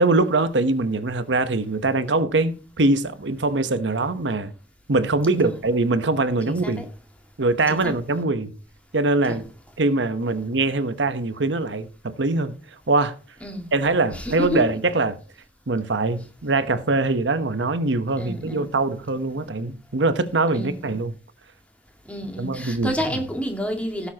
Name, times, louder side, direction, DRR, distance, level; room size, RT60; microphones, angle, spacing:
voice 1, 0.0-4.5 4.9-6.8 7.4-8.5 8.9-9.4 9.8-12.6 12.9-13.2 13.7-15.2 15.7-21.1 22.4-23.2, right 2 dB, 85° right, 1.0 m, -23 dB
voice 2, 6.5-6.9 7.7-7.9 9.3-9.4 13.4-13.7 14.1-14.6 18.2-18.7 20.5-20.9 22.1-24.1, equal, 10° left, 1.9 m, -29 dB
17.0 x 7.1 x 2.9 m
head